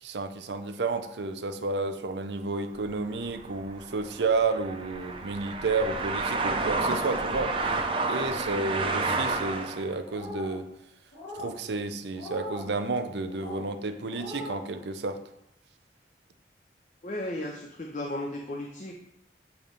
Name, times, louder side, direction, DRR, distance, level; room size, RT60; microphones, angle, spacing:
voice 1, 0.0-7.6 8.1-10.7 11.3-15.2, right 3 dB, 80° right, 8 dB, 0.6 m, -31 dB
sound 1, 2.8-9.9, right 3 dB, 30° right, 0.5 m, -30 dB
sound 2, 10.1-10.6 11.1-11.6 12.1-12.7 13.3-13.6 14.1-14.6, left 1 dB, 75° left, 1.8 m, -40 dB
voice 2, 17.0-18.9, left 1 dB, 45° left, 2 dB, 0.5 m, -35 dB
7.1 x 3.1 x 5.2 m, 0.81 s
head